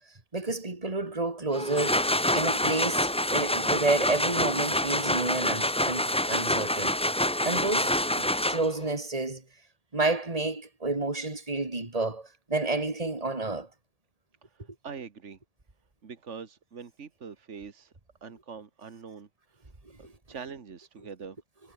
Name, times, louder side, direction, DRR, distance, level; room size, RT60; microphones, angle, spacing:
voice 1, 0.3-6.9 7.4-9.4 9.9-13.7 20.0-20.1, right 3 dB, 30° right, 2.7 m, -30 dB
sound 1, 1.5-8.9, left 1 dB, 5° left, 0.7 m, -27 dB
voice 2, 14.4-15.4 16.0-17.9 18.2-19.7 20.0-21.4, right 6 dB, 75° right, 1.9 m, -44 dB
omnidirectional pair, 1.2 m